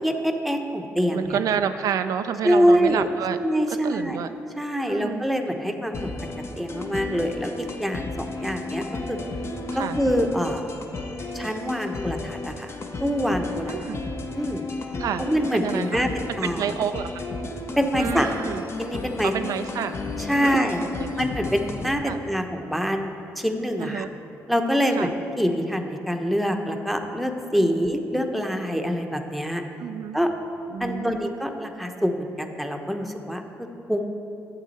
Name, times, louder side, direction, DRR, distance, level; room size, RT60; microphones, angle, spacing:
voice 1, 0.0-1.4 2.4-3.1 3.4-4.3 4.6-9.2 9.7-10.7 11.3-12.7 13.0-13.7 14.3-14.6 15.2-16.7 17.8-18.3 18.8-19.3 20.3-20.8 21.2-24.0 24.5-29.6 30.1-30.3 30.8-34.1, equal, ahead, 4 dB, 0.9 m, -25 dB
voice 2, 1.1-3.4 3.7-4.3 4.9-5.2 9.7-10.0 13.7-14.0 15.0-15.2 15.5-16.1 16.4-17.3 18.0-18.6 19.2-19.9 20.4-21.2 22.1-22.2 23.8-24.1 25.0-25.1 27.5-27.8 29.8-30.2 30.7-31.2, right 8 dB, 70° right, 9 dB, 0.3 m, -29 dB
sound 1, 5.9-21.9, left 3 dB, 45° left, 0.9 m, -33 dB
10.5 x 7.4 x 4.2 m, 2.9 s
supercardioid pair, 65°, 6 cm